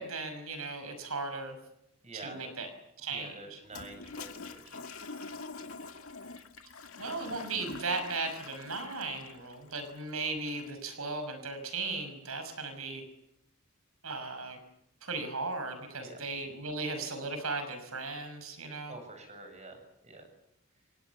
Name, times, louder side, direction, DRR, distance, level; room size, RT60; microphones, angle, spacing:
voice 1, 0.0-1.6 2.2-2.7 3.0-3.6 7.0-13.0 14.0-14.6 15.0-18.9, right 3 dB, 80° right, 8 dB, 5.9 m, -37 dB
voice 2, 2.0-2.6 3.1-4.9 15.9-16.2 18.9-20.3, right 2 dB, 35° right, 5 dB, 8.0 m, -48 dB
Toilet flush, 3.6-10.9, left 4 dB, 70° left, 2.1 m, -45 dB
29.0 x 24.5 x 7.2 m, 0.84 s
head